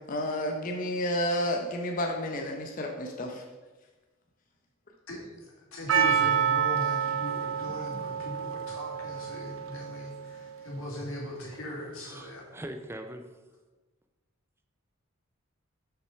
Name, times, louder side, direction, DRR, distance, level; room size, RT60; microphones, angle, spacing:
voice 1, 0.1-3.4, left 1 dB, 40° left, 2 dB, 0.8 m, -31 dB
voice 2, 5.7-12.4, left 1 dB, 85° left, -2 dB, 2.5 m, -39 dB
Percussion, 5.9-10.8, right 8 dB, 75° right, 0.6 m, -29 dB
voice 3, 12.0-13.3, right 1 dB, 10° right, 6 dB, 0.5 m, -41 dB
6.6 x 5.9 x 5.6 m, 1.2 s
head